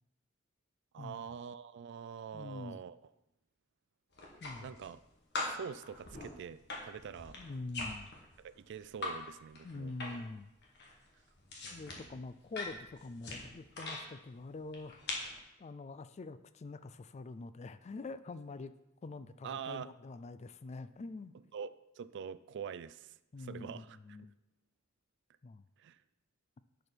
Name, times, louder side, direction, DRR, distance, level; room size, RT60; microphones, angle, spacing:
voice 1, 0.9-3.0 4.6-5.0 5.4-7.4 8.4-9.9 11.6-11.8 19.4-19.9 21.5-24.0 25.8-26.0, right 7 dB, 60° right, 16 dB, 0.3 m, -45 dB
voice 2, 2.3-2.8 4.4-4.7 7.4-8.1 9.6-10.5 11.7-15.0 15.6-18.7 19.0-21.3 23.3-24.3 25.4-25.7, left 3 dB, 35° left, 13 dB, 0.4 m, -45 dB
sound 1, 4.1-5.0 5.3-9.2 9.5-10.4 10.6-14.0 14.7-15.4, left 2 dB, 55° left, 1.8 m, -42 dB
10.5 x 5.1 x 4.5 m, 0.90 s
head